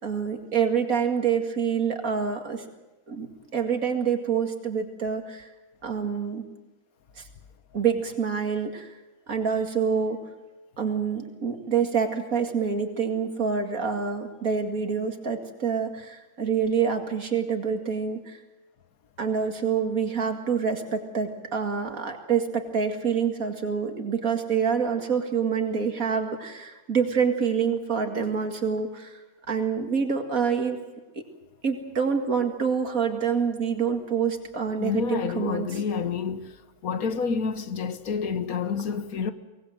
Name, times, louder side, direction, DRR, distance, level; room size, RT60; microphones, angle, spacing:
voice 1, 0.0-2.6 3.1-5.5 5.8-6.5 7.2-7.3 7.7-8.9 9.3-10.2 10.8-18.4 19.2-29.2 29.5-30.8 31.6-35.8, right 6 dB, 75° right, 2.6 m, -26 dB
voice 2, 34.8-36.5 36.8-39.3, left 5 dB, 85° left, 1.6 m, -28 dB
24.0 x 19.0 x 7.7 m
omnidirectional pair, 1.5 m